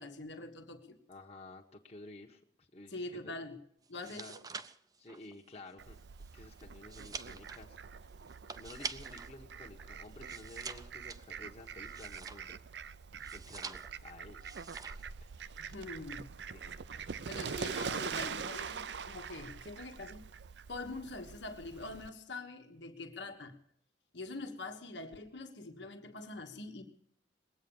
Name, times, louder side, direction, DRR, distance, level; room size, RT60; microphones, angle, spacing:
voice 1, 0.0-1.0 2.9-3.6 3.9-4.4 15.6-16.3 17.3-20.2 20.7-23.6 24.1-26.8, left 2 dB, 80° left, 4 dB, 1.5 m, -44 dB
voice 2, 1.1-3.4 4.1-4.4 5.0-6.0 6.3-7.8 8.6-12.6 13.1-14.8 15.2-15.5 16.5-16.8 17.2-17.8, left 2 dB, 35° left, 0 dB, 1.3 m, -53 dB
sound 1, 3.9-9.3 9.7-12.7 13.2-14.1 14.4-15.1 15.4-15.8, right 5 dB, 20° right, 0.5 m, -46 dB
Fowl, 5.8-22.1, right 6 dB, 70° right, 0.5 m, -44 dB
20.5 x 8.8 x 7.1 m, 0.67 s
head